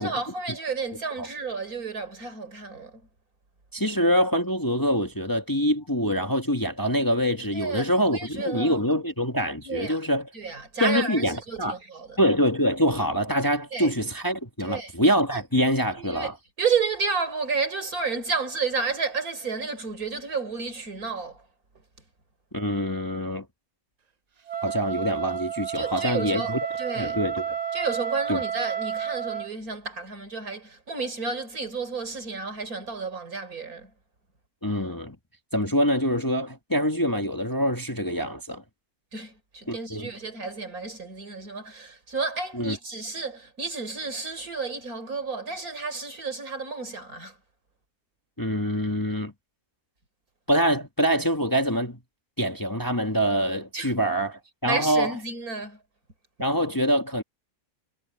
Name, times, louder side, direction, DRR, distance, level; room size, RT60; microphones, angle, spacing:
voice 1, 0.0-3.0 7.5-8.8 9.6-10.0 10.3-12.2 13.7-13.9 14.6-14.9 15.3-15.4 16.0-16.3 16.6-21.4 25.7-26.5 26.8-27.2 27.7-33.9 39.1-47.4 53.7-53.9 54.6-55.8, right 4 dB, 70° right, 4.5 m, -31 dB
voice 2, 3.7-10.3 10.8-11.8 12.2-16.3 22.5-23.4 24.6-26.6 27.0-27.6 28.3-28.4 34.6-35.2 35.5-38.6 39.7-40.1 42.5-42.8 48.4-49.3 50.5-52.0 52.4-55.1 56.4-57.2, equal, 15° left, 1.4 m, -25 dB
Wind instrument woodwind instrument, 24.5-29.5, right 8 dB, 45° right, 0.5 m, -31 dB
omnidirectional pair, 1.6 m